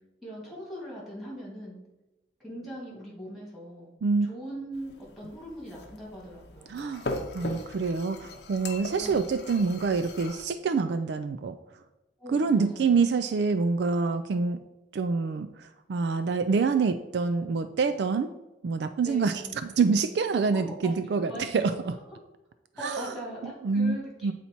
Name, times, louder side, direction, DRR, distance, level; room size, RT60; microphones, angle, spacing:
voice 1, 0.2-1.8 2.4-3.9 4.2-6.8 9.0-9.2 9.5-9.7 12.2-12.9 19.0-19.7 20.5-21.8 22.1-22.2 22.8-24.3, equal, ahead, -5 dB, 2.1 m, -41 dB
sound 1, 4.7-10.4, left 2 dB, 60° left, 0.8 m, -40 dB
voice 2, 6.7-7.1 7.3-11.6 12.3-14.6 14.9-18.3 18.6-21.9 22.8-23.1 23.6-24.0 24.2-24.3, right 4 dB, 60° right, 10 dB, 0.3 m, -26 dB
8.3 x 4.2 x 4.4 m, 1.0 s
head